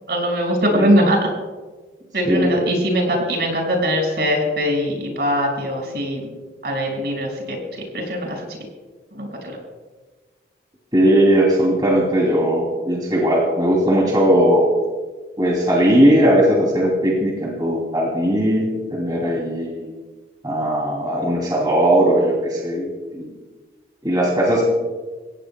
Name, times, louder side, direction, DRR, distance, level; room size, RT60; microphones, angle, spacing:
voice 1, 0.1-1.3 2.1-6.3 6.6-8.5 9.1-9.6, equal, 65° right, 0 dB, 5.5 m, -21 dB
voice 2, 10.9-14.7 15.4-19.9 20.4-23.3 24.0-24.6, right 1 dB, 25° right, -2 dB, 2.8 m, -18 dB
27.5 x 16.5 x 2.2 m, 1.3 s
head